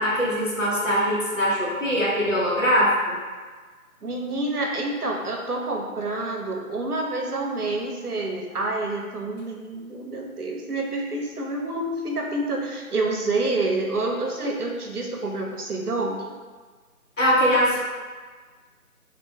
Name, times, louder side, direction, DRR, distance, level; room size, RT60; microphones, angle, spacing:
voice 1, 0.0-3.2 17.2-17.8, equal, 60° left, -6 dB, 1.2 m, -22 dB
voice 2, 4.0-16.3, right 2 dB, 85° right, 1 dB, 0.8 m, -28 dB
3.6 x 2.3 x 3.6 m, 1.4 s
figure-of-eight pair, 165°, 44 cm